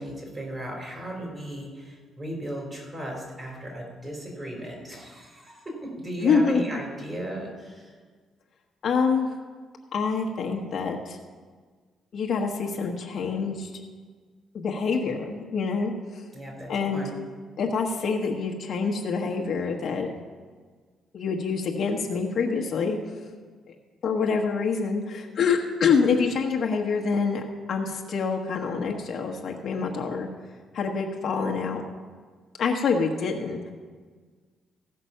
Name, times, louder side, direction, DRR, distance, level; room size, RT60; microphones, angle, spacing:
voice 1, 0.0-8.0 16.3-17.2, right 1 dB, 30° right, -1 dB, 4.2 m, -36 dB
voice 2, 6.2-6.8 8.8-9.3 9.9-11.2 12.1-13.7 14.5-15.9 16.7-17.0 17.6-20.1 21.1-23.0 24.0-27.4 27.7-30.3 30.7-31.8 32.6-33.6, left 5 dB, 60° left, 1 dB, 1.3 m, -26 dB
16.0 x 5.9 x 5.7 m, 1.5 s
cardioid pair, 90°, 0 cm